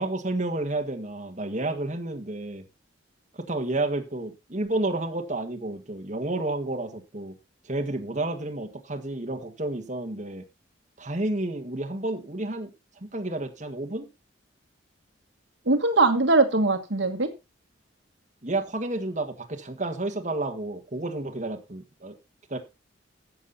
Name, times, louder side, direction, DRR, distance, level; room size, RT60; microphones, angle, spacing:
voice 1, 0.0-2.6 3.3-7.4 7.6-10.4 11.0-12.7 13.0-14.1 18.4-22.2 22.5-22.6, right 2 dB, 35° right, 3 dB, 1.7 m, -30 dB
voice 2, 15.7-17.3, right 3 dB, 65° right, 7 dB, 1.5 m, -21 dB
13.5 x 7.6 x 4.1 m, 0.26 s
head